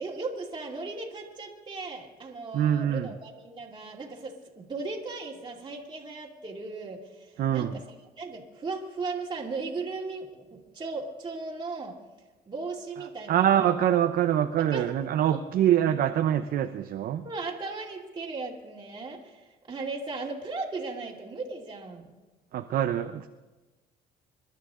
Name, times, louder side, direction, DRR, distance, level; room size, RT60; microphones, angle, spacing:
voice 1, 0.0-7.8 8.2-10.5 10.7-11.9 12.5-13.8 14.6-14.9 15.3-15.4 17.2-19.4 19.7-22.1, right 3 dB, 25° right, -2 dB, 2.5 m, -37 dB
voice 2, 2.5-3.2 7.4-7.8 13.3-17.3 22.5-23.3, right 10 dB, 60° right, 7 dB, 0.7 m, -25 dB
26.0 x 12.0 x 3.7 m, 1.2 s
cardioid pair, 110°, 17 cm